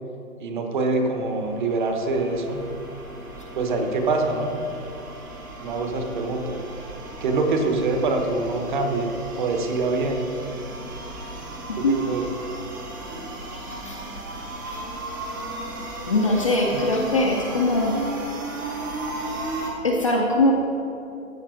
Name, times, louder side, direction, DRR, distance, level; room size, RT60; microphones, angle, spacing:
voice 1, 0.4-2.6 3.5-4.5 5.6-6.6 7.2-9.1 9.4-10.3 11.7-12.2, right 3 dB, 35° right, 4 dB, 1.1 m, -24 dB
sound 1, 1.0-19.7, right 2 dB, 15° right, 0.6 m, -35 dB
voice 2, 11.7-12.0 13.5-14.0 14.7-14.8 16.1-18.0 19.8-20.5, left 2 dB, 25° left, -1 dB, 0.5 m, -22 dB
14.0 x 6.0 x 4.9 m, 2.8 s
hypercardioid pair, 155°, 41 cm